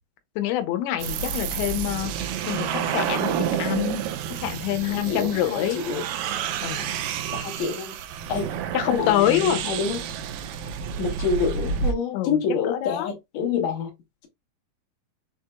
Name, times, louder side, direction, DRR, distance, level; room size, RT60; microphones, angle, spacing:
voice 1, 0.4-4.0 4.3-5.8 6.6-6.9 8.7-9.6 12.1-13.1, left 13 dB, 90° left, 2.7 m, -26 dB
sound 1, 1.0-11.9, right 8 dB, 85° right, 2.0 m, -29 dB
voice 2, 4.8-6.0 7.3-8.0 8.3-8.6 8.9-10.0 11.0-13.9, left 5 dB, 60° left, 2.2 m, -27 dB
6.3 x 2.8 x 2.2 m
omnidirectional pair, 4.5 m